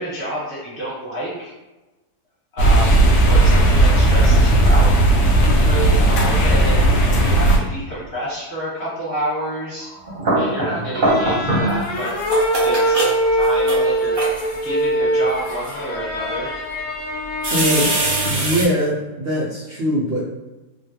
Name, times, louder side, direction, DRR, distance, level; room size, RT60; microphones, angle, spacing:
voice 1, 0.0-1.5 2.5-4.9 5.3-9.9 10.3-12.1 12.6-13.0 13.3-14.2 14.6-16.5, right 1 dB, 35° left, -8 dB, 1.4 m, -28 dB
sound 1, 2.6-7.6, right 1 dB, 90° left, 1.2 m, -14 dB
sound 2, 9.9-11.8 12.1-14.6 15.3-15.8 16.4-16.5 17.4-18.7, right 1 dB, 45° right, 0.7 m, -22 dB
sound 3, 11.0-18.5, right 1 dB, 65° left, 0.8 m, -22 dB
voice 2, 17.5-18.0 18.2-20.2, equal, 85° right, -6 dB, 0.5 m, -21 dB
3.1 x 2.2 x 2.7 m, 1.1 s
omnidirectional pair, 1.7 m